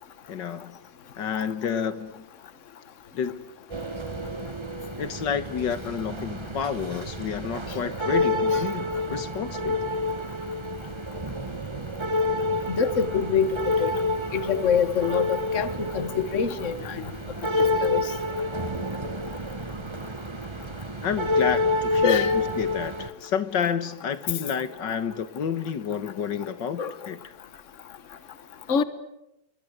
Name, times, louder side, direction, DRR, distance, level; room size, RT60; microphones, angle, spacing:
voice 1, 0.3-0.8 1.2-2.2 3.1-3.5 5.0-9.8 21.0-27.2, left 7 dB, 80° left, 2.1 m, -30 dB
sound 1, 3.7-23.1, left 2 dB, 20° right, 1.1 m, -28 dB
voice 2, 12.7-13.5 13.8-13.9 14.3-17.1 17.6-18.0 22.0-22.5 26.8-26.9 28.7-28.8, left 6 dB, 45° left, 1.7 m, -25 dB
29.5 x 25.0 x 8.1 m
omnidirectional pair, 1.9 m